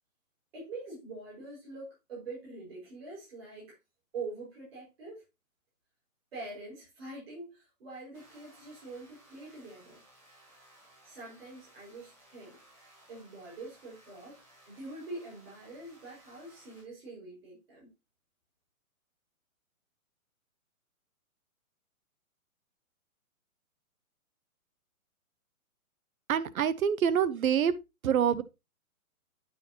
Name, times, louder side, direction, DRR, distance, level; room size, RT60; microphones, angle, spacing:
voice 1, 0.5-3.8 4.1-5.2 6.3-10.0 11.0-17.9, right 3 dB, 40° right, 5.3 m, -45 dB
sound 1, 8.1-16.8, right 1 dB, 20° right, 2.9 m, -60 dB
voice 2, 26.3-27.7 28.0-28.4, right 8 dB, 75° right, 0.8 m, -26 dB
9.1 x 5.9 x 2.8 m
hypercardioid pair, 170°, 43 cm